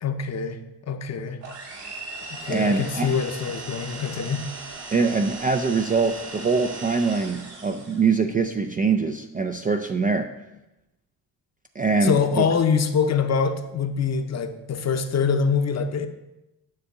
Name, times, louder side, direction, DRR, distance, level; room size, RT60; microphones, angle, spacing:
voice 1, 0.0-1.4 2.3-4.4 12.0-16.1, left 6 dB, 40° left, 8 dB, 0.7 m, -24 dB
sound 1, 1.4-8.1, right 3 dB, 75° right, 3.0 m, -38 dB
voice 2, 2.5-3.1 4.9-10.3 11.8-12.4, right 4 dB, 20° right, 6 dB, 0.3 m, -23 dB
9.7 x 3.5 x 6.6 m, 0.95 s
cardioid pair, 110°, 43 cm